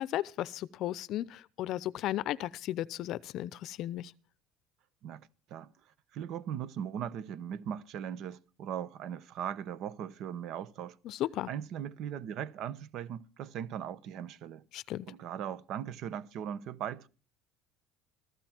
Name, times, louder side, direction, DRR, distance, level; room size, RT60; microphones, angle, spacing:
voice 1, 0.0-4.1 11.0-11.5 14.7-15.1, left 13 dB, 50° left, 0.6 m, -35 dB
voice 2, 5.0-5.7 6.1-11.0 11.5-14.6 15.1-17.1, right 9 dB, 55° right, 0.9 m, -39 dB
15.0 x 15.0 x 4.4 m
cardioid pair, 150°, 0 cm